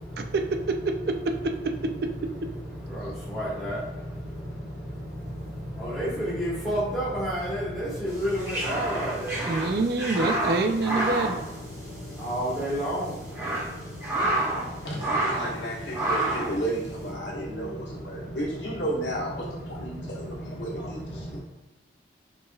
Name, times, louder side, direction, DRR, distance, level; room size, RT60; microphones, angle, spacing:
voice 1, 0.2-2.3 9.5-11.5 14.2-14.4, right 2 dB, 55° right, 5 dB, 0.4 m, -27 dB
voice 2, 2.7-9.8 10.3-10.8 11.1-16.6 17.2-18.8 19.4-21.4, equal, ahead, -10 dB, 1.6 m, -33 dB
sound 1, 8.1-12.2 12.5-12.6 13.1-14.7 15.0-15.6 15.9-16.6, right 2 dB, 15° right, 1.5 m, -29 dB
voice 3, 14.8-21.4, right 1 dB, 80° left, -4 dB, 1.5 m, -33 dB
5.2 x 4.3 x 2.3 m, 0.98 s
head